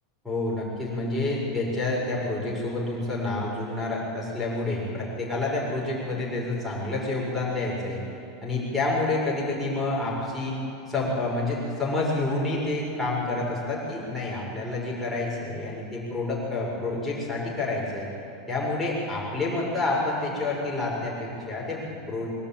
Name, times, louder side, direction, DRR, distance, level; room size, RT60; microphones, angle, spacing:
voice 1, 0.2-8.0 8.4-10.6 10.9-18.1 18.5-22.3, left 2 dB, ahead, -7 dB, 5.6 m, -28 dB
22.5 x 17.0 x 8.9 m, 2.7 s
supercardioid pair, 170°, 0 cm